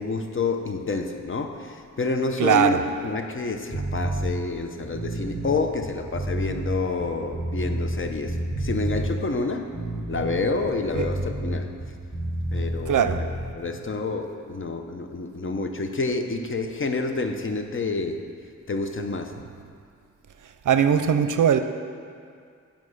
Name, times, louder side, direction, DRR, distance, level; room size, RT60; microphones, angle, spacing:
voice 1, 0.0-9.7 10.1-11.7 12.5-13.3 13.5-18.2 18.7-19.4, left 3 dB, 40° left, 6 dB, 0.7 m, -28 dB
voice 2, 2.4-2.8 11.0-11.1 12.9-13.2 20.7-21.6, right 8 dB, 75° right, 10 dB, 0.5 m, -20 dB
sound 1, 3.7-4.3 4.8-8.0 8.2-9.1 9.6-12.8 13.0-13.3, right 1 dB, 5° left, 1.6 m, -29 dB
9.5 x 5.2 x 6.5 m, 2.3 s
wide cardioid pair, 90°, 32 cm